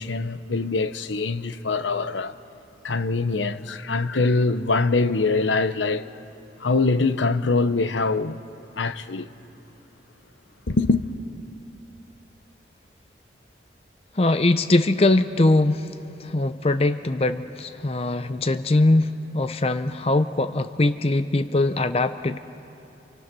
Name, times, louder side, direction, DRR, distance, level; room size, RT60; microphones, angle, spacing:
voice 1, 0.0-2.3 2.8-6.1 6.6-8.4 8.7-9.3 10.7-11.0, left 3 dB, 90° left, 0.9 m, -23 dB
voice 2, 14.1-22.4, left 2 dB, 30° left, 0.6 m, -22 dB
29.0 x 28.5 x 6.2 m
head